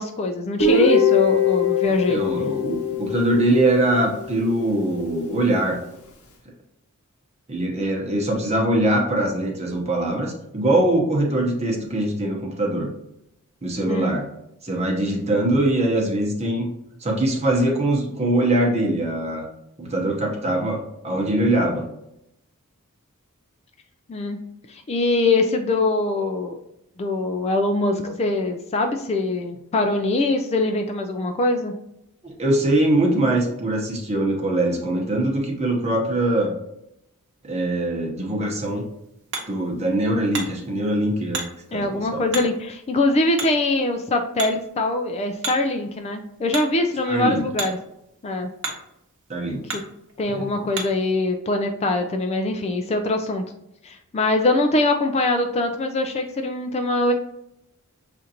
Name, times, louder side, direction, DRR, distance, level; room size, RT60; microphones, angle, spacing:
voice 1, 0.0-2.2 13.9-14.1 24.1-24.4 24.7-26.6 27.0-31.7 41.7-47.8 48.2-48.5 50.2-53.4 53.8-57.1, left 2 dB, 30° left, 5 dB, 0.3 m, -23 dB
Guitar, 0.6-4.4, left 5 dB, 70° left, 0.8 m, -21 dB
voice 2, 2.1-5.8 7.5-12.9 13.6-14.3 14.6-16.7 17.0-19.5 19.8-21.9 32.2-36.5 37.4-38.8 39.5-42.3 47.1-47.4 49.3-49.6 50.3-50.7, right 1 dB, 30° right, 0 dB, 0.9 m, -22 dB
Hammer, 38.4-51.1, right 3 dB, 60° right, 0.9 m, -37 dB
6.4 x 2.5 x 2.8 m, 0.82 s
head